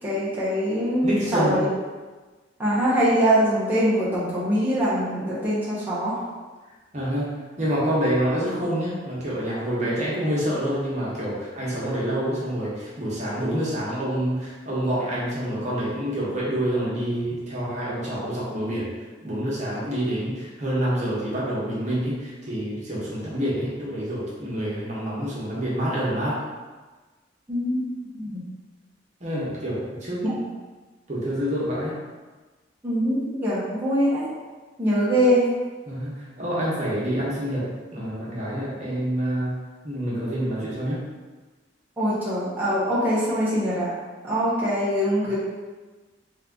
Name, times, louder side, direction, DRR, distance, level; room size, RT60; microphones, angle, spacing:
voice 1, 0.0-1.7 2.6-6.2 27.5-28.4 30.2-30.3 32.8-34.2 34.8-35.5 42.0-43.9 44.2-45.3, equal, 10° right, -10 dB, 1.0 m, -23 dB
voice 2, 1.0-1.7 6.9-7.3 7.6-18.9 19.2-26.4 29.2-30.4 31.1-32.0 35.9-41.0, equal, 40° right, -7 dB, 1.2 m, -27 dB
3.5 x 3.1 x 3.8 m, 1.3 s
head